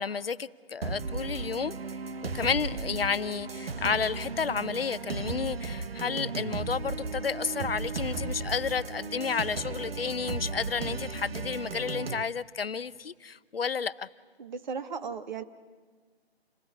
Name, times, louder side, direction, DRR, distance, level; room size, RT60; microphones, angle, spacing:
voice 1, 0.0-1.8 2.2-14.1, left 6 dB, 60° left, 16 dB, 0.8 m, -31 dB
sound 1, 0.8-12.2, right 4 dB, 65° right, 1.0 m, -35 dB
voice 2, 14.4-15.4, right 6 dB, 45° right, 10 dB, 1.5 m, -36 dB
28.0 x 17.0 x 9.8 m, 1.5 s
figure-of-eight pair, 150°, 32 cm